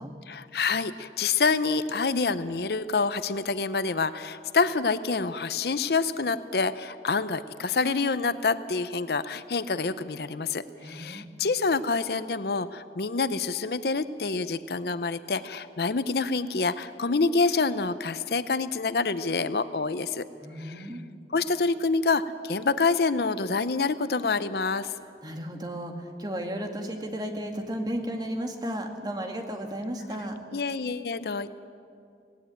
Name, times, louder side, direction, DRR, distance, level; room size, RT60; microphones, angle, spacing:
voice 1, 0.3-20.3 20.6-20.9 21.3-24.9 30.5-31.5, left 4 dB, 60° left, 14 dB, 0.6 m, -27 dB
voice 2, 10.8-11.3 20.4-21.0 25.2-30.4, equal, 25° right, 3 dB, 2.0 m, -34 dB
18.0 x 17.0 x 9.1 m, 2.4 s
head